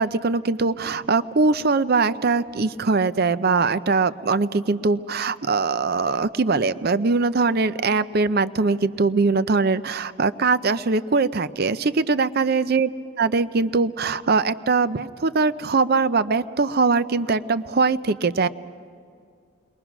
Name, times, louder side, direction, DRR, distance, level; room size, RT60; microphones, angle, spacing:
voice 1, 0.0-12.9 13.2-18.5, right 4 dB, 50° right, 14 dB, 0.6 m, -21 dB
29.0 x 22.0 x 6.0 m, 2.3 s
head